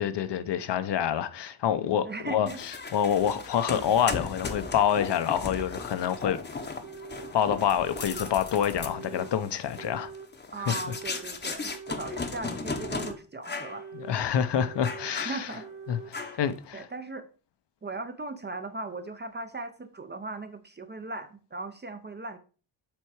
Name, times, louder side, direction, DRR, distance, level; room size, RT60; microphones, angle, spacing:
voice 1, 0.0-6.4 7.3-10.1 10.7-10.8 13.9-15.5 15.9-16.9, left 9 dB, 60° left, 0.7 m, -27 dB
voice 2, 2.0-2.6 10.5-13.9 15.1-15.7 16.2-16.4 16.7-17.3 17.8-22.4, right 3 dB, 20° right, 0.5 m, -38 dB
sound 1, 2.5-13.1 13.4-13.8 14.2-14.3 14.8-15.7 16.1-16.5, left 4 dB, 20° left, 0.8 m, -37 dB
sound 2, 4.6-4.7 5.6-5.7 6.6-7.4 7.8-8.4 8.8-9.3 9.8-10.3 10.7-11.3 11.7-12.3 12.7-13.2 13.6-14.2 14.6-15.2 15.6-16.2, right 6 dB, 80° right, 2.0 m, -44 dB
7.4 x 4.6 x 4.7 m
wide cardioid pair, 160°, 48 cm